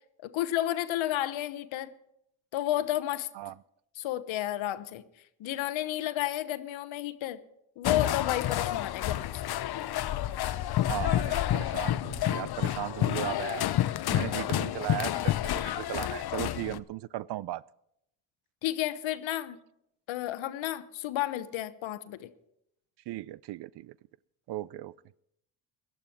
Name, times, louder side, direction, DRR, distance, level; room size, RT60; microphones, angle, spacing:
voice 1, 0.2-1.9 2.5-3.3 4.0-5.0 5.4-7.4 7.8-9.4 18.6-19.6 20.1-22.3, left 13 dB, 75° left, 1.1 m, -31 dB
sound 1, 7.8-16.8, left 13 dB, 55° left, 0.7 m, -29 dB
voice 2, 10.9-13.6 14.1-17.6 23.1-24.0 24.5-25.0, right 15 dB, 60° right, 0.5 m, -37 dB
18.0 x 11.5 x 4.5 m
supercardioid pair, 75°, 47 cm